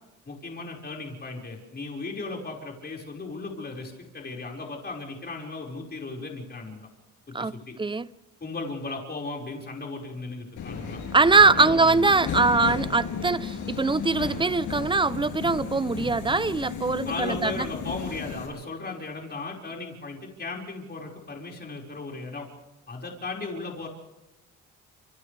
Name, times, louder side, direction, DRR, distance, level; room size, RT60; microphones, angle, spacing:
voice 1, 0.3-6.9 7.3-7.8 8.4-11.0 11.5-11.9 17.1-22.5 22.9-23.9, left 3 dB, 35° left, 5.3 m, -36 dB
voice 2, 7.3-8.1 11.1-17.7, right 3 dB, 15° right, 0.6 m, -22 dB
Subway metro underground, 10.6-18.5, left 6 dB, 80° left, 7.7 m, -34 dB
28.5 x 27.5 x 3.4 m
cardioid pair, 90°, 30 cm